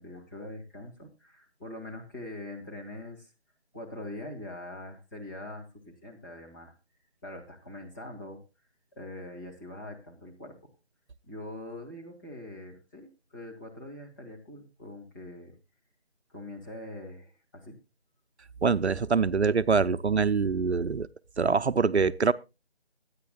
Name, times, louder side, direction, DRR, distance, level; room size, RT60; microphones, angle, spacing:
voice 1, 0.0-3.3 3.7-6.7 7.2-8.4 8.9-10.7 11.3-15.6 16.3-17.8, left 1 dB, 20° left, 2.3 m, -43 dB
voice 2, 18.6-21.1 21.4-22.3, right 5 dB, 75° right, 0.7 m, -24 dB
22.0 x 9.6 x 2.3 m
figure-of-eight pair, 165°, 33 cm